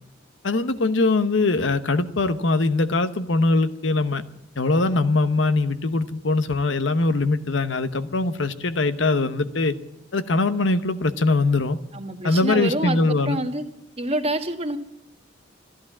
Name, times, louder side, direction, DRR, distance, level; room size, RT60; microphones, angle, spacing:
voice 1, 0.4-4.2 4.6-9.8 10.1-11.8 12.2-13.4, left 3 dB, 70° left, 11 dB, 1.0 m, -22 dB
voice 2, 11.9-13.6 14.0-14.8, right 1 dB, 35° right, 6 dB, 1.5 m, -27 dB
14.0 x 11.5 x 8.4 m, 0.84 s
head